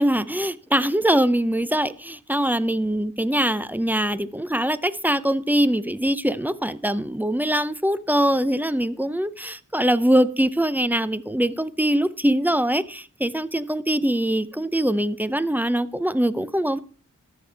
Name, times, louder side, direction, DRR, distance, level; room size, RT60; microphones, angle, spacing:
voice 1, 0.0-16.8, right 1 dB, 5° right, 0.5 m, -23 dB
13.0 x 6.7 x 3.4 m
wide cardioid pair, 55°, 33 cm